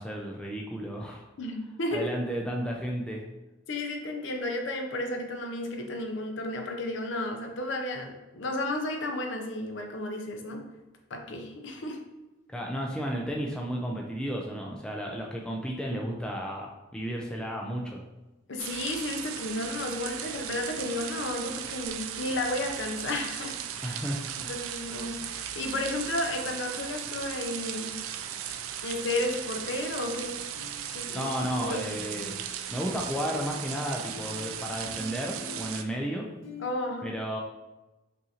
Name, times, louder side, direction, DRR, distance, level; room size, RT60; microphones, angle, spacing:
voice 1, 0.0-1.2 1.9-3.2 12.5-18.0 23.8-24.5 31.1-32.4 32.7-36.3 37.0-37.4, equal, 5° left, -1 dB, 0.3 m, -33 dB
voice 2, 1.4-2.1 3.7-10.6 11.1-12.0 18.5-24.0 24.4-27.9 28.8-30.4 30.9-31.3 31.6-31.8 36.6-37.1, left 1 dB, 60° left, 3 dB, 0.6 m, -33 dB
sound 1, 18.6-35.8, right 9 dB, 85° right, 0.3 m, -37 dB
sound 2, 29.0-29.2 30.6-30.8 31.1-32.9 33.2-36.7, left 3 dB, 80° left, 1.2 m, -46 dB
5.4 x 2.6 x 2.8 m, 1.0 s
head